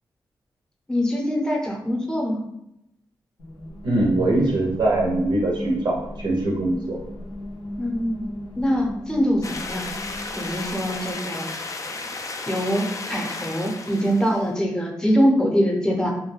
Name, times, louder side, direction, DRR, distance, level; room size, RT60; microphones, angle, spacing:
voice 1, 0.9-2.4 7.8-8.2 8.6-9.9 10.4-11.5 12.5-16.1, equal, 5° left, -1 dB, 0.7 m, -23 dB
sound 1, 3.4-11.2, left 1 dB, 85° left, 0.7 m, -37 dB
voice 2, 3.8-7.0, right 2 dB, 60° right, -3 dB, 0.5 m, -22 dB
sound 2, 9.4-14.4, left 3 dB, 40° left, 0.4 m, -33 dB
2.3 x 2.2 x 3.1 m, 0.84 s
cardioid pair, 50°, 9 cm